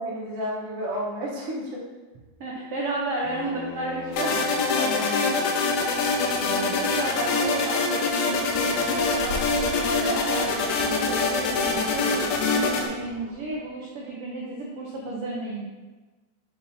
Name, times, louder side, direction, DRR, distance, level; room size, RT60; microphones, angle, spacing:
voice 1, 0.0-1.8 4.7-5.3, equal, 60° right, -4 dB, 1.6 m, -31 dB
voice 2, 2.4-5.4 6.4-15.7, right 2 dB, 85° right, -3 dB, 1.3 m, -33 dB
Bowed string instrument, 3.2-8.1, left 3 dB, 70° left, 1.9 m, -39 dB
sound 1, 4.1-12.9, left 3 dB, 90° left, 2.3 m, -24 dB
sound 2, 8.3-13.7, equal, 45° right, 1.7 m, -40 dB
7.0 x 5.4 x 2.8 m, 1.2 s
omnidirectional pair, 3.8 m